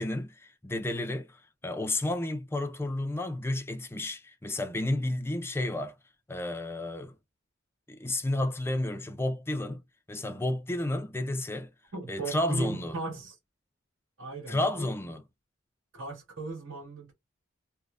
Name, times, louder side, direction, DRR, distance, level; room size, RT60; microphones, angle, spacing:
voice 1, 0.0-1.3 1.6-5.9 6.3-7.1 7.9-9.8 10.1-11.7 12.1-12.9 14.5-15.2, left 1 dB, 10° left, 0.5 m, -31 dB
voice 2, 11.9-13.4 14.2-14.9 15.9-17.1, right 3 dB, 75° right, 1.8 m, -37 dB
3.3 x 2.2 x 2.5 m
head